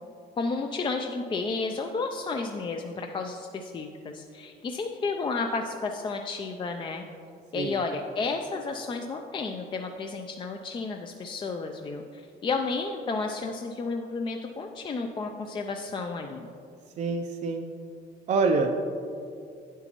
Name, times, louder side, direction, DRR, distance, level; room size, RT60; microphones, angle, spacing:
voice 1, 0.4-7.1 7.5-16.5, left 4 dB, 30° left, 4 dB, 0.4 m, -32 dB
voice 2, 17.0-17.6 18.3-18.7, right 4 dB, 45° right, 3 dB, 0.5 m, -25 dB
8.7 x 8.0 x 3.0 m, 2.5 s
cardioid pair, 110°, 17 cm